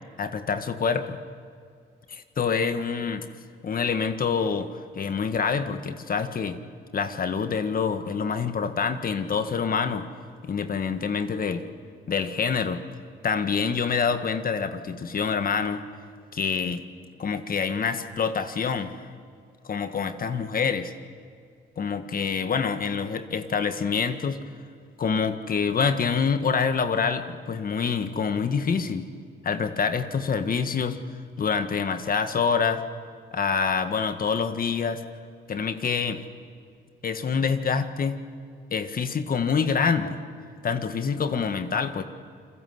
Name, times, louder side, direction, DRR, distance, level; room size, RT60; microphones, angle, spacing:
voice 1, 0.2-1.2 2.1-3.3 3.6-6.6 6.9-10.1 10.4-11.6 12.1-12.8 13.2-15.8 16.3-16.8 17.2-18.9 19.6-20.9 21.8-24.4 25.0-29.1 29.4-31.0 31.4-32.8 33.3-35.0 35.5-36.2 37.0-38.2 38.7-40.2 40.6-42.0, left 6 dB, 45° left, 9 dB, 1.7 m, -26 dB
29.0 x 22.0 x 8.1 m, 2.3 s
cardioid pair, 90°, 20 cm